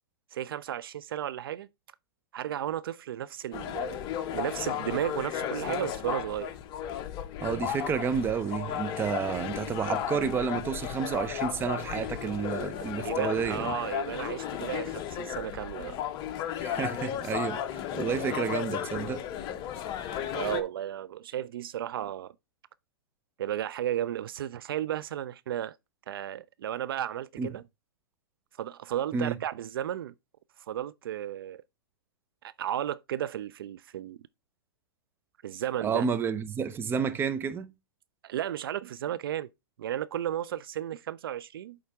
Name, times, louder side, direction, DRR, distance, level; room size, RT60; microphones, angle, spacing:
voice 1, 0.3-1.7 2.3-4.0 4.3-6.5 13.0-16.0 18.0-18.1 20.3-22.3 23.4-25.8 26.1-27.6 28.6-30.1 30.7-31.6 32.4-34.2 35.4-36.1 38.2-39.5 39.8-41.8, right 11 dB, 65° right, 0.4 m, -34 dB
sound 1, 3.5-20.6, left 10 dB, 35° left, 0.8 m, -34 dB
voice 2, 7.4-13.7 16.6-17.6 17.9-19.2 27.4-27.5 29.1-29.4 35.8-37.7, right 6 dB, 15° right, 0.6 m, -30 dB
8.4 x 3.9 x 3.4 m
hypercardioid pair, 115°, 13 cm